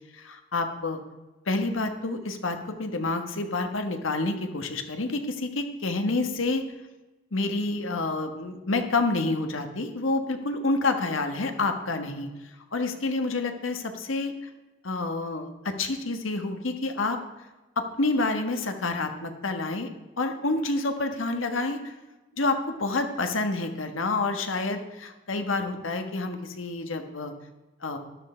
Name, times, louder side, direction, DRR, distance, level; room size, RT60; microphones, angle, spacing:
voice 1, 0.1-1.0 1.5-6.6 7.3-12.3 12.7-14.5 14.8-17.2 17.8-19.9 20.2-21.9 22.3-27.3 27.8-28.0, left 3 dB, 90° left, 6 dB, 1.3 m, -28 dB
12.5 x 11.0 x 4.4 m, 1.1 s
head